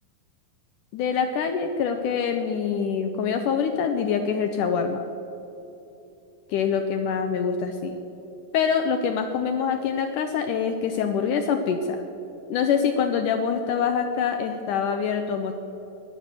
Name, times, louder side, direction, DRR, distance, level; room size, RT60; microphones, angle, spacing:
voice 1, 0.9-5.1 6.5-8.0 8.5-12.0 12.5-15.5, left 6 dB, 75° left, 6 dB, 2.0 m, -25 dB
13.5 x 11.0 x 8.3 m, 2.9 s
omnidirectional pair, 4.2 m